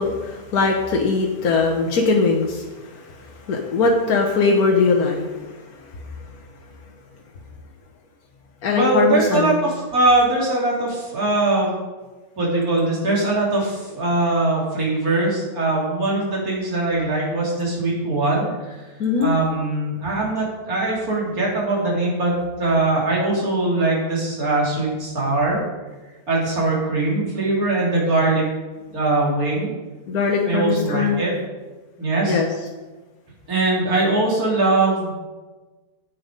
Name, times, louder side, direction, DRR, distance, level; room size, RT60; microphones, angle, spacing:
voice 1, 0.0-5.6 8.6-9.6 19.0-19.3 30.1-31.2 32.3-32.5, left 4 dB, 75° left, 0 dB, 1.6 m, -21 dB
voice 2, 8.7-11.7 12.4-18.5 19.2-22.3 22.6-25.6 26.3-28.4 28.9-29.7 30.5-31.3 32.0-32.4 33.5-35.1, right 2 dB, 65° right, -4 dB, 3.6 m, -21 dB
9.5 x 8.3 x 5.2 m, 1.2 s
omnidirectional pair, 1.6 m